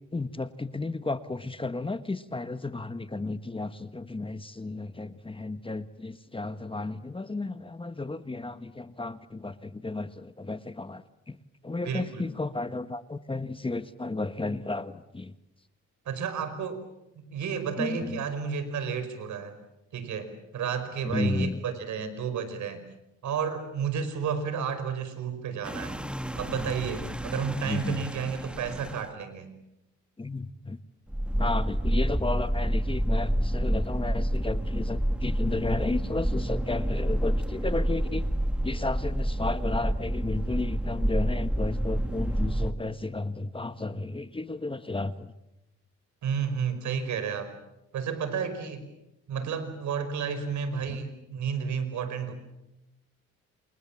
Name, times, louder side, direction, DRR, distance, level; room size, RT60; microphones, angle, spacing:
voice 1, 0.1-11.4 11.6-15.3 17.8-18.2 21.1-21.6 27.7-28.0 30.2-30.8 31.4-38.2 38.6-45.3 50.9-51.0, left 3 dB, 15° left, 11 dB, 1.5 m, -33 dB
voice 2, 11.8-12.3 16.1-16.8 17.2-19.5 19.9-22.8 23.2-26.0 26.4-29.5 46.2-47.5 47.9-48.9 49.3-52.3, right 6 dB, 70° right, 11 dB, 5.3 m, -31 dB
sound 1, 25.6-29.1 31.1-42.7, equal, 5° right, 1.7 m, -28 dB
28.5 x 28.0 x 7.4 m, 0.91 s
cardioid pair, 90°, 30 cm